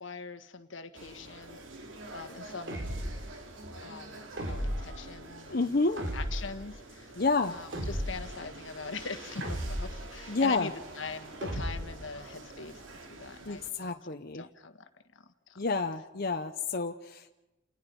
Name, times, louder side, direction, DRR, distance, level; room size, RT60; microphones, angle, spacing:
voice 1, 0.0-1.6 2.1-3.0 3.8-7.1 7.5-14.9 15.1-15.6, left 4 dB, 75° left, 9 dB, 1.5 m, -43 dB
sound 1, 0.9-13.7, right 2 dB, 85° right, 2.8 m, -47 dB
sound 2, 2.7-3.3 4.4-5.0 6.0-6.6 7.7-8.4 9.4-10.1 11.4-12.0, equal, 70° right, 3.1 m, -35 dB
voice 2, 5.5-6.0 7.1-7.6 10.3-10.7 13.4-14.5 15.6-17.3, left 3 dB, 50° left, 5 dB, 0.9 m, -29 dB
29.5 x 19.0 x 5.4 m, 1.0 s
head